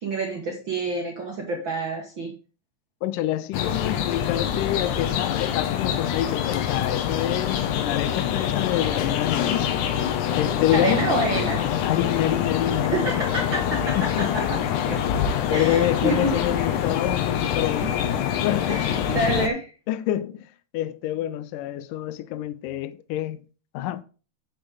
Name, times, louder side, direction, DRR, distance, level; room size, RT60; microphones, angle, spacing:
voice 1, 0.0-2.3 10.7-11.6 12.9-14.6 14.9-15.0 15.5-16.4 17.8-17.9 18.7-19.7, right 2 dB, 80° right, 1.0 m, -27 dB
voice 2, 3.0-9.7 10.4-11.0 11.8-12.9 14.0-14.3 15.5-18.0 18.4-18.8 19.9-23.4 23.7-24.0, left 12 dB, 85° left, 1.9 m, -27 dB
sound 1, 3.5-19.5, left 9 dB, 70° left, 2.2 m, -25 dB
9.1 x 6.9 x 3.8 m
omnidirectional pair, 4.5 m